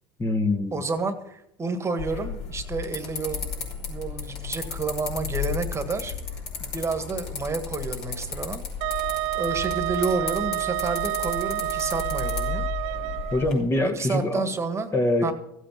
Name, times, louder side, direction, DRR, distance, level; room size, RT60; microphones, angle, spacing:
voice 1, 0.2-0.7 13.3-14.4 14.9-15.3, left 2 dB, 20° left, 1.5 m, -24 dB
voice 2, 0.7-3.5 3.9-6.1 6.6-9.0 9.3-12.6 13.9-14.9 15.2-15.3, right 4 dB, 25° right, 1.6 m, -30 dB
sound 1, 2.0-13.5, left 6 dB, 60° left, 5.6 m, -34 dB
Wind instrument woodwind instrument, 8.8-13.5, right 18 dB, 65° right, 0.5 m, -29 dB
15.0 x 8.3 x 7.3 m
supercardioid pair, 100°, 12 cm